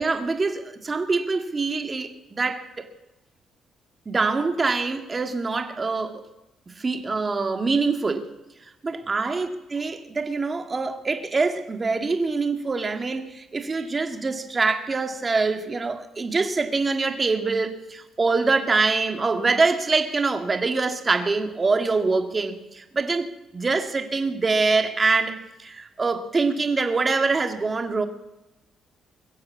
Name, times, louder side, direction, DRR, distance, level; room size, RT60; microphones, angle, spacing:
voice 1, 0.0-2.9 4.1-6.2 6.8-8.3 8.8-23.3 23.5-28.1, right 4 dB, 30° right, 6 dB, 2.1 m, -24 dB
22.0 x 7.8 x 8.5 m, 1.0 s
cardioid pair, 90°, 0 cm